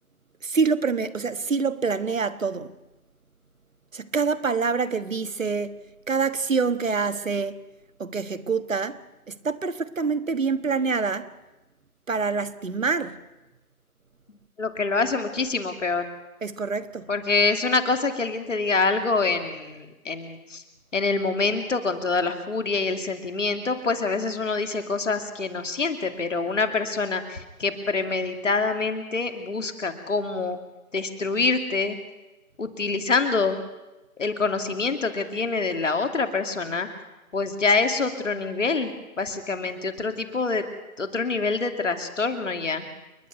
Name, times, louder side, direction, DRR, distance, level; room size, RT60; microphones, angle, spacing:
voice 1, 0.4-2.7 3.9-5.8 6.1-7.6 8.0-9.0 9.3-11.3 12.1-13.2 16.4-17.1, right 5 dB, 60° right, 1.5 m, -26 dB
voice 2, 14.6-16.1 17.1-20.6 20.9-30.6 30.9-32.0 32.6-33.6 34.2-36.9 37.3-40.6 41.0-42.9, left 4 dB, 55° left, 2.7 m, -26 dB
29.5 x 11.0 x 9.3 m
figure-of-eight pair, 165°, 45 cm